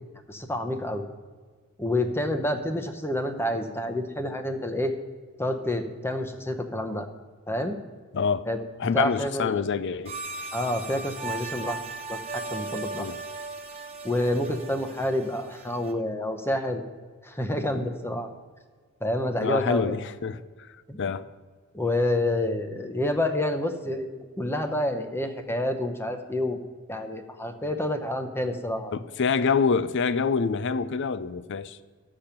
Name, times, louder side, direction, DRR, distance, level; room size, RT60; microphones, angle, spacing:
voice 1, 0.3-1.1 1.8-4.9 5.4-7.1 7.5-7.8 8.5-9.7 10.5-11.8 12.1-13.1 14.0-16.8 17.2-18.3 19.0-20.0 20.9-21.1 21.7-26.6 26.9-28.9, left 1 dB, 10° left, 0.8 m, -28 dB
voice 2, 8.1-8.5 8.8-10.2 13.0-13.2 19.4-20.4 21.0-21.3 28.9-31.8, left 5 dB, 60° left, 0.5 m, -26 dB
sound 1, 10.0-15.9, right 3 dB, 30° right, 1.1 m, -37 dB
13.5 x 6.9 x 5.8 m
head